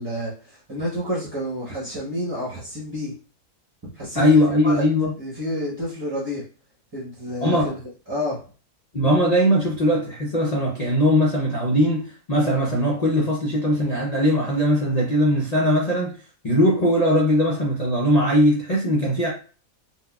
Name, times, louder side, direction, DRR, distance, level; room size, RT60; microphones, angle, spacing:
voice 1, 0.0-3.1 3.9-4.8 5.2-6.4 6.9-7.8 8.1-8.4, equal, 20° right, -6 dB, 0.7 m, -29 dB
voice 2, 4.1-5.1 7.4-7.7 8.9-16.1 16.4-19.3, equal, 85° left, -4 dB, 0.3 m, -20 dB
4.2 x 2.2 x 2.3 m, 0.37 s
omnidirectional pair, 1.7 m